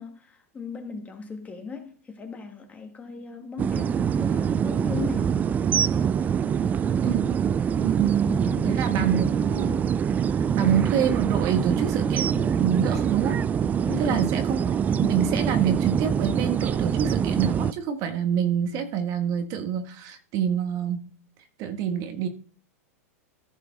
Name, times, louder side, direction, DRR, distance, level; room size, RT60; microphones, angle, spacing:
voice 1, 0.0-5.5 8.4-8.9 13.9-14.3, left 5 dB, 15° left, 1.8 m, -37 dB
sound 1, 3.6-17.7, right 7 dB, 20° right, 0.3 m, -24 dB
voice 2, 7.8-9.8 10.3-13.4 14.0-21.0 21.6-22.3, right 8 dB, 45° right, 1.4 m, -27 dB
14.5 x 5.8 x 3.9 m
hypercardioid pair, 120°, 8 cm